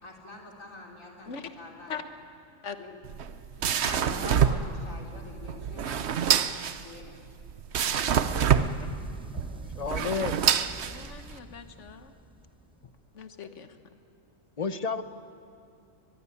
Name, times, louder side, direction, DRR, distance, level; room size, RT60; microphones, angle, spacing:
voice 1, 0.0-2.1 2.8-2.9 3.6-7.2, left 2 dB, 85° left, 0 dB, 4.1 m, -44 dB
sound 1, 3.0-11.4, right 8 dB, 60° right, 1.0 m, -27 dB
sound 2, 8.1-13.0, right 1 dB, 5° right, 0.7 m, -44 dB
voice 2, 9.8-10.4 14.6-15.0, left 5 dB, 35° left, 11 dB, 0.8 m, -30 dB
voice 3, 10.8-12.1 13.1-13.7, left 6 dB, 65° left, 8 dB, 1.6 m, -40 dB
22.5 x 21.5 x 9.8 m, 2.5 s
omnidirectional pair, 1.3 m